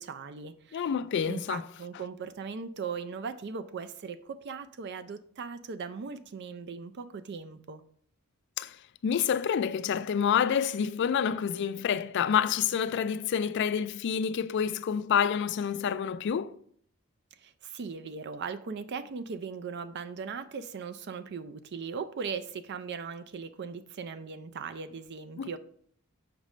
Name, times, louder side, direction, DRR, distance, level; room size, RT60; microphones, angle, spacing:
voice 1, 0.0-0.9 1.3-7.8 17.4-25.6, right 5 dB, 50° right, 0.4 m, -39 dB
voice 2, 0.7-1.6 8.6-8.8 9.0-16.5 25.4-25.6, left 7 dB, 55° left, 0.3 m, -28 dB
6.1 x 5.1 x 3.2 m
head